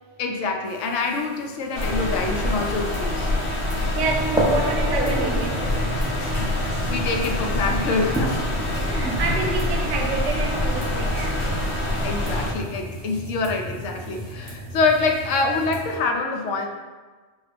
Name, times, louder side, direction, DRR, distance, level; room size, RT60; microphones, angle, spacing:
voice 1, 0.2-3.3 6.4-8.5 11.8-16.7, left 3 dB, 85° left, 3 dB, 0.9 m, -26 dB
sound 1, 0.6-16.0, equal, 55° right, 1.1 m, -50 dB
sound 2, 1.7-12.5, left 1 dB, 60° left, 0.8 m, -25 dB
voice 2, 3.9-6.2 8.7-11.4, right 3 dB, 90° right, 2 dB, 1.0 m, -28 dB
sound 3, 4.0-15.9, equal, 5° right, 0.4 m, -31 dB
5.3 x 2.3 x 3.3 m, 1.4 s
omnidirectional pair, 1.2 m